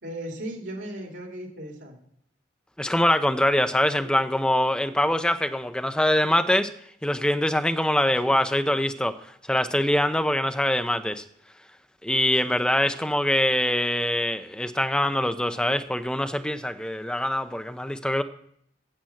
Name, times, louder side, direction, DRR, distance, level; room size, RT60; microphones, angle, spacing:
voice 1, 0.0-2.0 4.0-4.1 8.2-8.4 12.4-12.6, right 1 dB, 80° right, 1 dB, 2.9 m, -37 dB
voice 2, 2.8-6.7 7.0-9.1 9.5-11.2 12.0-18.2, left 1 dB, 5° left, 8 dB, 0.5 m, -24 dB
8.9 x 7.5 x 7.2 m, 0.68 s
head